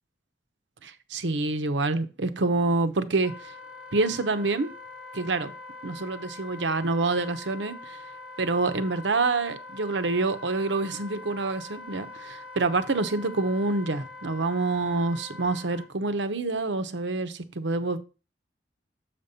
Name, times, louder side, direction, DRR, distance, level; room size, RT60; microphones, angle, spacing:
voice 1, 0.8-3.5 3.9-4.7 5.1-5.5 5.8-8.0 8.4-18.0, right 3 dB, 80° right, 0.8 m, -27 dB
Wind instrument woodwind instrument, 3.2-15.9, left 3 dB, 5° right, 0.9 m, -43 dB
7.4 x 5.2 x 4.1 m
head